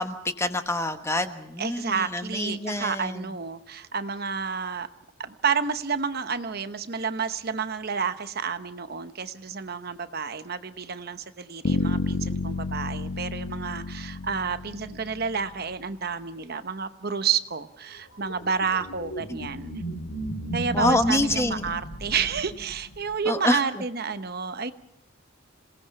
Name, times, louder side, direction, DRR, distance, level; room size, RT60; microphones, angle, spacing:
voice 1, 0.0-3.3 20.7-21.7 23.3-23.6, left 1 dB, 15° left, 8 dB, 1.2 m, -26 dB
voice 2, 1.6-4.9 5.2-19.8 20.5-24.7, right 6 dB, 50° right, 10 dB, 0.9 m, -30 dB
Bass guitar, 11.6-15.7, left 2 dB, 55° left, 1.0 m, -30 dB
sound 1, 18.1-23.2, right 1 dB, 75° left, 2.1 m, -36 dB
27.5 x 18.5 x 5.9 m, 0.79 s
head